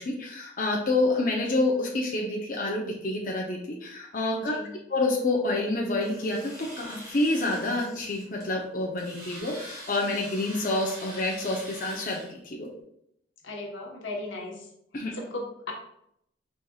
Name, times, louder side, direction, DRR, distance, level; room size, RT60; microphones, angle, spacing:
voice 1, 0.1-4.6 4.9-12.2 12.4-12.7 14.9-15.1, left 2 dB, 45° left, -3 dB, 0.7 m, -28 dB
voice 2, 4.4-4.8 13.4-14.7 15.1-15.7, left 2 dB, 85° left, -1 dB, 1.1 m, -36 dB
Domestic sounds home sounds, 6.0-12.3, right 1 dB, 20° right, 1.6 m, -45 dB
4.8 x 4.1 x 2.3 m, 0.74 s
head